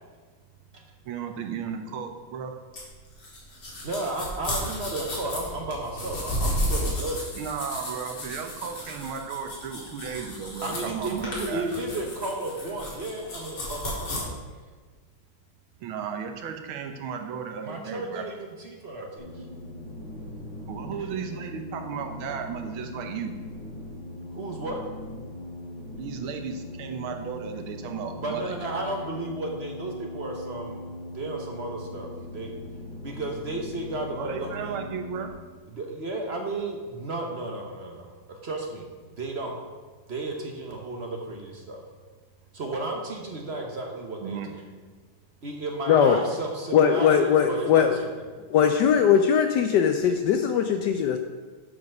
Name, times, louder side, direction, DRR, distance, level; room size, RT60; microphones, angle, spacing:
voice 1, 1.1-2.5 7.3-11.7 15.8-18.2 20.7-23.3 26.0-28.8 34.2-35.3 44.2-44.5, right 7 dB, 80° right, 4 dB, 1.7 m, -34 dB
sound 1, 2.7-14.2, equal, 55° left, 2.6 m, -33 dB
voice 2, 3.8-7.3 10.6-14.4 17.6-19.3 21.0-21.1 24.3-24.8 28.2-30.8 31.1-32.5 33.0-34.9 35.7-38.9 39.2-39.5 40.1-41.8 42.5-44.4 45.4-48.1, right 2 dB, 50° right, 1 dB, 0.8 m, -33 dB
sound 2, 19.2-35.3, left 2 dB, 35° left, 2.8 m, -40 dB
voice 3, 46.7-47.9 48.5-51.2, left 8 dB, 75° left, 6 dB, 1.0 m, -20 dB
8.0 x 5.0 x 5.9 m, 1.4 s
omnidirectional pair, 2.3 m